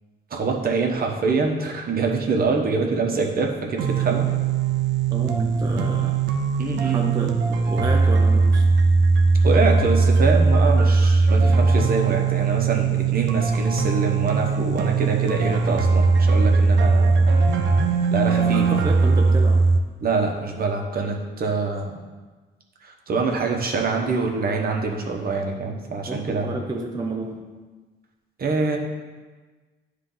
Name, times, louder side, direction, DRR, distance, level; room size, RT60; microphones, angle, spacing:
voice 1, 0.3-4.3 6.6-7.1 9.4-17.2 18.1-18.7 20.0-21.9 22.8-26.6 28.4-28.8, right 4 dB, 50° right, 2 dB, 1.0 m, -25 dB
sound 1, 3.8-19.8, right 4 dB, 70° right, 0.6 m, -19 dB
voice 2, 5.1-6.3 6.8-8.6 11.4-11.6 18.4-19.7 26.1-27.5, right 2 dB, 20° right, 0 dB, 0.6 m, -30 dB
9.9 x 3.3 x 3.9 m, 1.3 s
cardioid pair, 90°, 20 cm